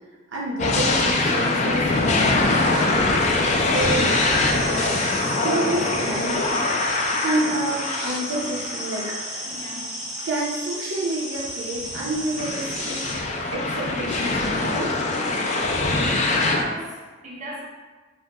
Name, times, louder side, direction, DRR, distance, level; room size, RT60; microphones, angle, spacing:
voice 1, 0.3-3.3 3.6-4.2 5.4-6.4 7.2-9.5 10.3-13.1 13.5-14.9, right 1 dB, 75° right, -4 dB, 0.6 m, -29 dB
sound 1, 0.6-9.7 10.2-10.3 11.7-16.6, left 2 dB, 35° left, 0.3 m, -23 dB
sound 2, 3.7-13.1, right 1 dB, ahead, 0.6 m, -34 dB
voice 2, 9.4-9.9 16.4-17.6, equal, 40° right, -6 dB, 0.7 m, -38 dB
2.9 x 2.1 x 3.4 m, 1.3 s
head